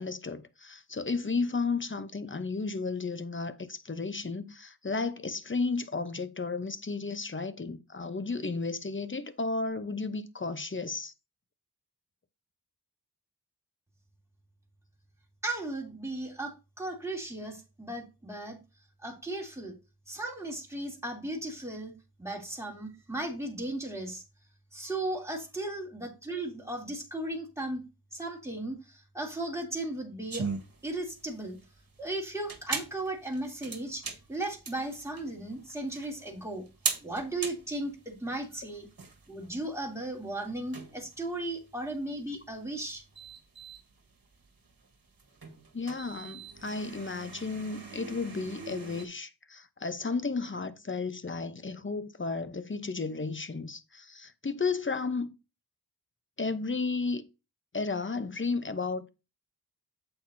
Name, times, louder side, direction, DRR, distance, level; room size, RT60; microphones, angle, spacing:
voice 1, 0.0-11.1 45.7-55.3 56.4-57.3 57.7-59.1, left 4 dB, 30° left, 0.9 m, -33 dB
voice 2, 15.4-18.6 19.0-19.7 20.1-21.9 22.2-24.2 24.7-27.8 28.1-30.5 30.8-31.6 32.0-36.6 37.0-38.9 39.3-43.0, right 2 dB, 5° right, 3.1 m, -36 dB
sound 1, 30.3-49.1, right 4 dB, 60° right, 1.6 m, -41 dB
8.3 x 7.9 x 2.7 m
cardioid pair, 45°, 40 cm